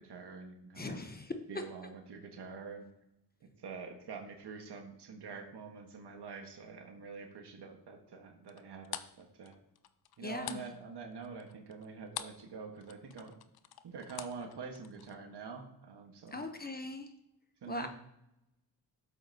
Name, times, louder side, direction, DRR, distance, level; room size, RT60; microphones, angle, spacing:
voice 1, 0.0-1.0 1.5-2.9 3.6-9.5 10.2-13.4 13.8-16.4 17.6-17.9, right 5 dB, 70° right, 3 dB, 1.6 m, -46 dB
voice 2, 0.8-1.3 10.2-10.6 16.3-17.1 17.7-17.9, left 2 dB, 20° left, 6 dB, 0.9 m, -40 dB
sound 1, 8.5-12.5 12.8-15.2, left 10 dB, 65° left, 0.6 m, -45 dB
11.5 x 7.6 x 2.9 m, 0.84 s
cardioid pair, 80°, 41 cm